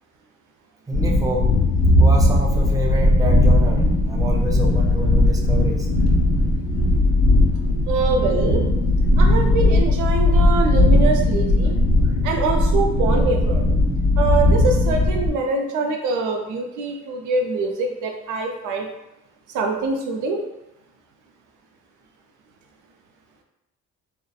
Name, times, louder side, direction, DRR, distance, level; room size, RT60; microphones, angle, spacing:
sound 1, 0.9-15.3, left 1 dB, 70° left, 1.0 m, -18 dB
voice 1, 0.9-1.5 2.0-5.9, right 1 dB, 10° right, -1 dB, 0.4 m, -28 dB
voice 2, 7.9-8.6 9.2-11.8 12.2-13.7 14.2-18.9 19.5-20.4, right 3 dB, 85° right, 3 dB, 0.5 m, -24 dB
2.7 x 2.1 x 2.3 m, 0.93 s
cardioid pair, 90°, 30 cm